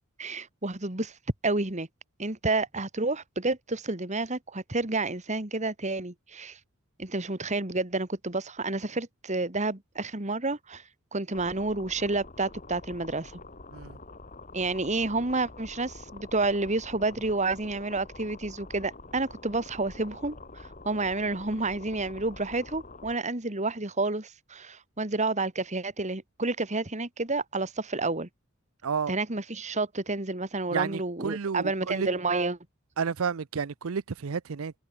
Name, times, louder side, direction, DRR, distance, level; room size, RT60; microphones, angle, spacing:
voice 1, 0.2-1.1 1.4-1.9 2.2-6.6 7.0-10.8 11.1-13.4 14.5-20.4 20.8-28.3 29.1-32.6, right 3 dB, 35° right, 2.3 m, -30 dB
sound 1, 11.3-23.2, left 3 dB, 35° left, 2.4 m, -46 dB
voice 2, 28.8-29.1 30.7-32.1 33.0-34.7, right 6 dB, 70° right, 0.6 m, -31 dB
head